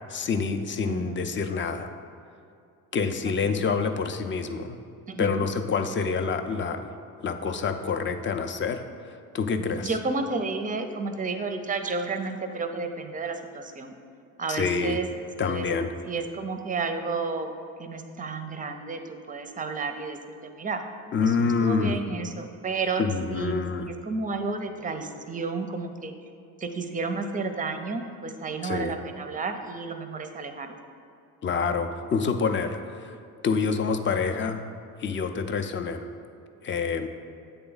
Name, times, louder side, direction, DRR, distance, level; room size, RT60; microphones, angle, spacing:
voice 1, 0.1-1.9 2.9-4.8 5.2-6.9 7.2-9.9 14.5-15.0 15.4-15.9 21.1-22.0 23.0-23.9 28.6-28.9 31.4-33.2 33.4-34.6 35.0-36.1 36.6-37.1, left 5 dB, 30° left, 7 dB, 0.5 m, -27 dB
voice 2, 0.9-1.3 3.4-3.7 5.1-5.4 9.7-13.9 14.4-15.1 15.4-15.7 16.1-17.5 17.8-20.8 21.2-23.0 23.3-26.1 26.6-30.7, right 4 dB, 20° right, 7 dB, 0.5 m, -31 dB
7.9 x 3.4 x 3.9 m, 2.5 s
supercardioid pair, 75°, 39 cm